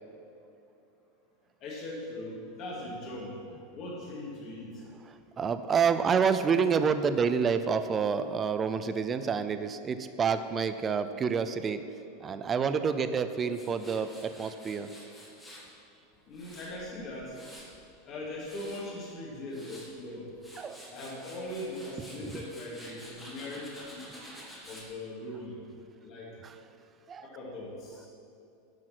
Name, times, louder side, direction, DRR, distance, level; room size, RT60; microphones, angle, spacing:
voice 1, 1.6-3.3 3.7-4.8 16.3-17.4 18.0-20.3 20.9-24.1 24.6-25.6 26.0-26.3 27.2-28.1, left 1 dB, 35° left, -3 dB, 2.6 m, -40 dB
voice 2, 5.1-11.8 12.2-14.9 20.6-20.8 22.2-22.3 24.2-24.5 26.4-26.5 27.1-27.3, right 6 dB, 20° right, 11 dB, 0.4 m, -28 dB
Tools, 13.5-15.7 16.1-17.8 18.2-18.8 19.3-19.9 20.3-24.9, equal, 5° left, 1.7 m, -50 dB
11.0 x 6.4 x 6.1 m, 2.7 s
supercardioid pair, 165°, 0 cm